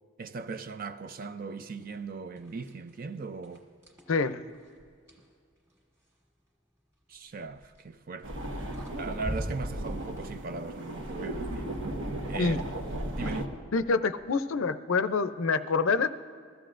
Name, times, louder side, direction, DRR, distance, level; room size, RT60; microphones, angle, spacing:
voice 1, 0.2-3.7 7.1-8.5 9.0-11.7 12.2-12.6 13.2-13.4, right 4 dB, 40° right, 0.4 m, -39 dB
sound 1, 1.8-2.0 2.4-3.0 3.4-5.3 7.5-7.8 8.4-8.5 8.7-10.2, equal, 15° right, 1.7 m, -39 dB
voice 2, 4.1-4.4 12.4-12.6 13.7-16.1, left 4 dB, 70° left, 0.5 m, -26 dB
sound 2, 8.2-13.5, right 1 dB, 60° right, 1.2 m, -36 dB
21.5 x 14.5 x 2.5 m
head